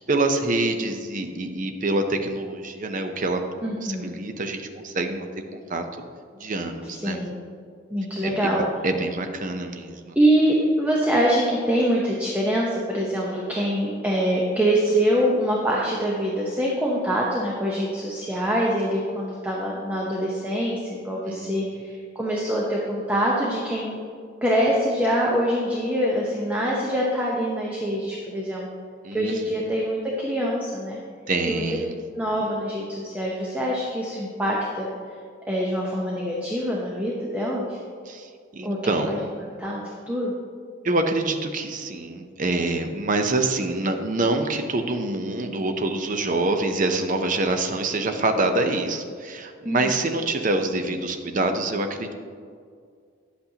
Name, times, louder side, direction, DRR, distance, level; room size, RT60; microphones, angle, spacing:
voice 1, 0.1-3.4 3.8-5.8 6.3-7.2 8.2-10.1 21.2-21.5 29.0-29.6 31.3-31.9 38.1-39.1 40.8-52.1, right 2 dB, 40° right, 6 dB, 0.7 m, -26 dB
voice 2, 3.6-4.1 6.9-7.3 7.9-8.6 10.1-24.0 24.4-28.7 29.1-31.0 31.5-31.6 32.1-34.9 35.5-37.8 38.6-39.2 39.6-40.3 49.6-49.9, equal, 10° right, -4 dB, 0.8 m, -24 dB
10.0 x 8.1 x 2.8 m, 2.1 s
head